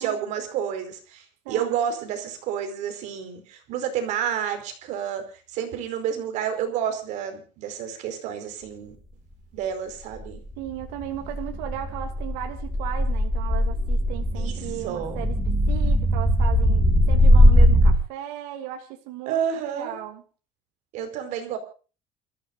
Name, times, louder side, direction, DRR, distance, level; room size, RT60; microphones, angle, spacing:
voice 1, 0.0-5.2 5.5-9.0 9.5-10.4 14.4-15.2 19.3-20.0 20.9-21.6, right 8 dB, 50° right, 7 dB, 4.7 m, -30 dB
voice 2, 1.4-1.8 10.6-15.4 15.7-16.8 17.1-20.2, right 12 dB, 85° right, 4 dB, 2.7 m, -36 dB
sound 1, 10.2-18.0, equal, 5° right, 2.3 m, -20 dB
28.5 x 15.0 x 2.6 m, 0.36 s
cardioid pair, 180°, 15 cm